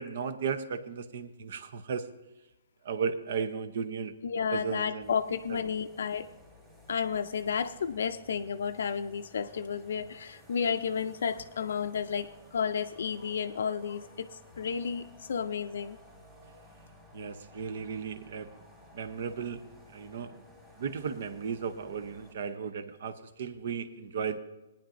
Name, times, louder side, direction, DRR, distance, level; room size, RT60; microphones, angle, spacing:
voice 1, 0.0-2.1 2.8-4.1 4.5-5.1 17.1-18.5 18.9-19.7 19.9-20.4 20.8-24.4, right 6 dB, 55° right, 11 dB, 0.8 m, -35 dB
voice 2, 4.2-6.3 6.9-14.3 14.6-16.0, left 6 dB, 70° left, 8 dB, 0.4 m, -32 dB
sound 1, 5.0-22.3, equal, 20° right, 2.5 m, -56 dB
18.5 x 10.0 x 2.6 m, 1.0 s
hypercardioid pair, 160°, 0 cm